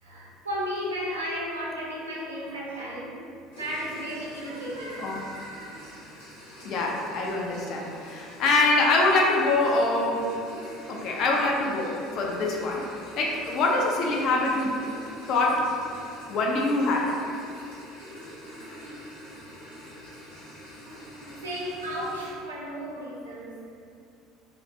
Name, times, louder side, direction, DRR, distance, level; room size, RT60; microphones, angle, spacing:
voice 1, 0.0-3.2 3.5-5.8 21.4-23.6, equal, 80° right, -6 dB, 0.5 m, -34 dB
sound 1, 3.5-22.3, equal, 70° left, 0.9 m, -45 dB
voice 2, 6.6-10.3 10.9-14.8 15.3-15.7 16.3-17.2, left 2 dB, 50° left, -1 dB, 0.4 m, -24 dB
2.4 x 2.1 x 2.6 m, 2.4 s
figure-of-eight pair, 65°, 0 cm